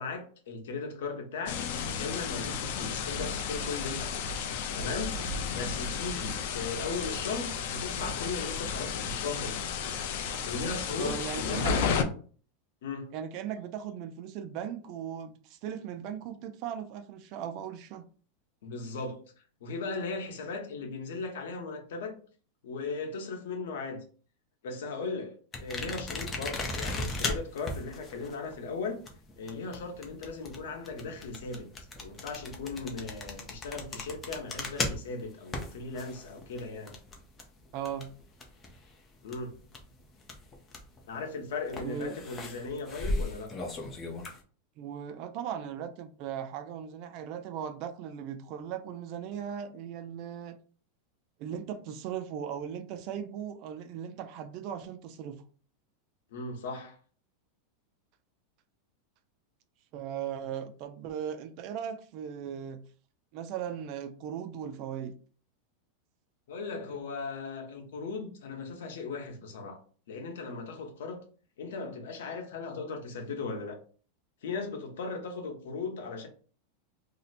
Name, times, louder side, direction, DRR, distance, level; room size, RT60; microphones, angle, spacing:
voice 1, 0.0-4.4 4.7-5.1 5.5-9.6 10.5-11.8 12.8-13.1 18.6-19.2 19.6-22.2 22.6-24.0 24.6-29.0 29.4-31.7 32.0-37.0 39.2-39.5 41.1-43.5 56.3-57.0 66.5-69.8 70.1-71.2 71.6-73.8 74.4-76.3, left 4 dB, 80° left, 0.9 m, -37 dB
sound 1, 1.5-12.0, left 6 dB, 60° left, 0.5 m, -33 dB
voice 2, 11.0-11.7 13.1-18.1 37.7-38.1 41.8-42.2 44.8-50.6 51.4-55.4 59.9-62.8 63.3-65.1, right 8 dB, 45° right, 0.4 m, -38 dB
sound 2, 25.5-38.9 39.2-41.0 41.7-44.4, left 2 dB, 20° left, 0.6 m, -37 dB
2.7 x 2.1 x 4.1 m
supercardioid pair, 155°, 0 cm